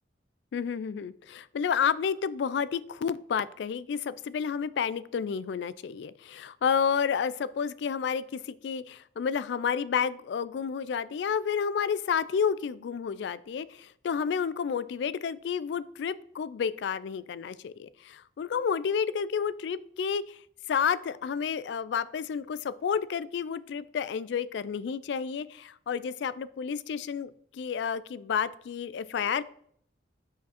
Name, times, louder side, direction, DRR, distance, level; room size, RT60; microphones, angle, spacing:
voice 1, 0.5-20.4 20.7-29.4, left 7 dB, 65° left, 18 dB, 0.3 m, -30 dB
5.8 x 5.0 x 4.1 m, 0.64 s
head